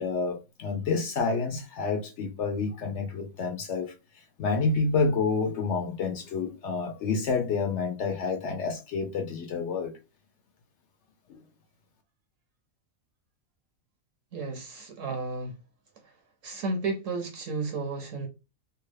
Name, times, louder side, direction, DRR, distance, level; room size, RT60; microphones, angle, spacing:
voice 1, 0.0-3.9 4.4-9.9 11.3-11.4, left 4 dB, 65° left, 0.7 m, -29 dB
voice 2, 14.3-15.6 16.0-16.2 16.4-18.3, right 3 dB, 70° right, 0.9 m, -33 dB
2.8 x 2.2 x 3.1 m
omnidirectional pair, 1.5 m